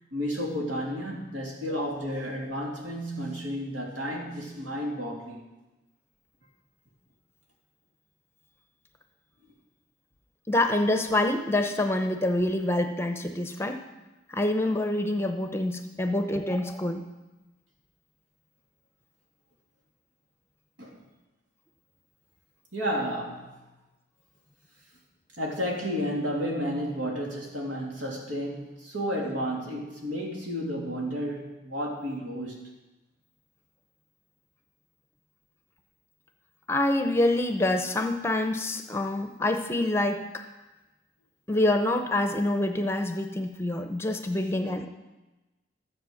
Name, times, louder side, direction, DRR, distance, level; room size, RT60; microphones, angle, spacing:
voice 1, 0.1-5.4 20.8-21.0 22.7-23.5 25.4-32.6, equal, 85° right, -2 dB, 3.0 m, -32 dB
voice 2, 10.5-13.8 14.3-17.0 36.7-40.2 41.5-44.9, left 1 dB, 15° left, 6 dB, 0.7 m, -26 dB
13.5 x 7.7 x 6.4 m, 1.1 s
head